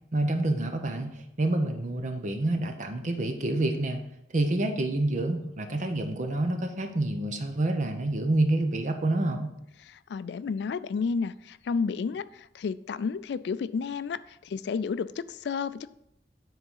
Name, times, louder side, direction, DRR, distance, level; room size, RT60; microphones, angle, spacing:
voice 1, 0.1-4.0 4.3-9.5, right 2 dB, 45° right, 6 dB, 0.7 m, -28 dB
voice 2, 9.8-15.9, left 5 dB, 70° left, 15 dB, 0.3 m, -31 dB
9.6 x 3.8 x 5.5 m, 0.80 s
head